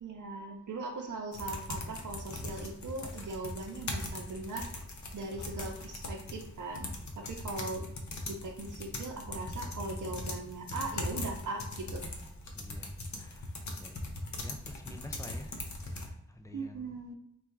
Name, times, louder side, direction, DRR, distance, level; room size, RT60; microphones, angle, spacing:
voice 1, 0.0-4.7 5.1-6.9 7.2-7.9 8.3-12.0 16.5-17.1, right 3 dB, 70° right, 0 dB, 0.6 m, -39 dB
sound 1, 1.3-16.1, left 2 dB, 65° left, 0.7 m, -40 dB
voice 2, 12.5-12.9 13.2-13.4 13.8-13.9 14.4-15.5 16.0-17.0, left 1 dB, 10° left, 5 dB, 0.4 m, -48 dB
3.6 x 2.3 x 4.5 m, 0.77 s
wide cardioid pair, 125°, 31 cm